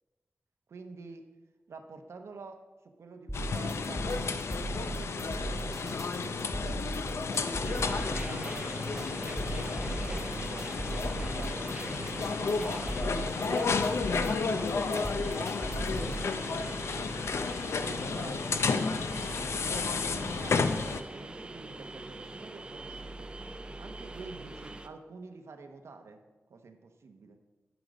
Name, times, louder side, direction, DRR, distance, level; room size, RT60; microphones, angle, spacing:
voice 1, 0.7-1.2 1.7-2.6 3.0-6.4 7.1-9.4 10.0-17.1 17.5-18.7 19.7-23.3 23.8-26.2 26.5-27.4, right 4 dB, 90° right, 5 dB, 0.8 m, -48 dB
sound 1, 3.3-21.0, left 4 dB, 80° left, 0.5 m, -32 dB
sound 2, 3.3-16.3, right 2 dB, 5° right, 1.4 m, -38 dB
sound 3, 7.6-24.9, right 2 dB, 20° right, 0.5 m, -43 dB
11.0 x 5.2 x 5.1 m, 1.2 s
wide cardioid pair, 95°, 5 cm